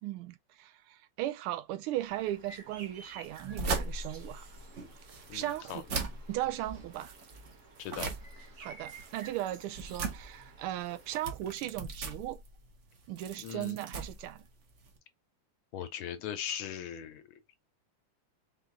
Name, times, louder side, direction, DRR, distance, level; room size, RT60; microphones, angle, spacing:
voice 1, 0.0-4.5 5.3-5.8 6.3-7.1 8.6-12.4 13.1-14.5, right 14 dB, 85° right, 1.5 m, -37 dB
sound 1, 1.9-11.3, right 3 dB, 45° right, 1.2 m, -53 dB
sound 2, 3.2-15.0, right 3 dB, 60° right, 0.7 m, -40 dB
voice 2, 5.3-5.8 7.8-8.1 13.4-13.8 15.7-17.4, left 9 dB, 75° left, 1.5 m, -39 dB
4.6 x 2.4 x 3.6 m
omnidirectional pair, 2.4 m